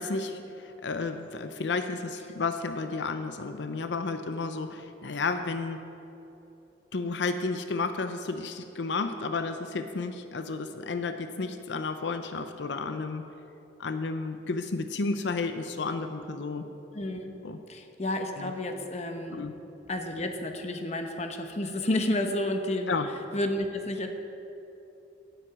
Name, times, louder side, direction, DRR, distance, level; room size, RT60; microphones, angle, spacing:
voice 1, 0.0-5.8 6.9-13.2 13.8-16.7 17.4-17.6 18.4-18.5 19.3-19.5 22.9-23.1, left 3 dB, 90° left, 8 dB, 0.6 m, -32 dB
voice 2, 16.9-17.3 17.7-19.5 19.9-22.9 23.3-24.1, left 1 dB, 40° left, 5 dB, 1.0 m, -31 dB
17.5 x 8.1 x 4.8 m, 3.0 s
head